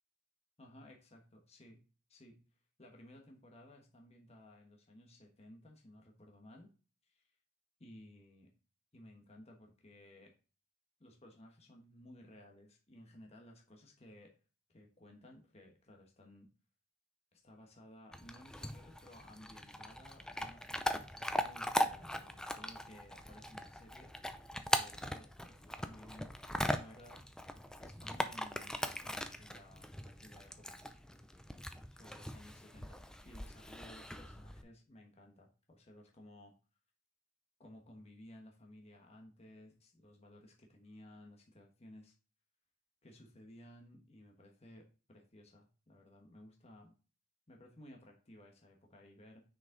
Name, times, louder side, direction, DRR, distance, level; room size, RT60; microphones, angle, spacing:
voice 1, 0.6-1.8 2.1-2.4 2.8-6.7 7.0-7.3 7.8-8.5 8.9-10.3 11.0-14.3 14.7-16.5 17.3-21.1 21.3-24.1 24.6-26.3 26.6-27.3 27.8-30.8 31.1-31.3 31.9-36.5 37.6-42.1 43.0-46.9 47.5-49.4, left 1 dB, 30° left, 1 dB, 1.2 m, -57 dB
Chewing mastication / Dog, 18.1-34.6, left 1 dB, 5° left, 0.4 m, -40 dB
6.2 x 5.2 x 3.8 m, 0.35 s
head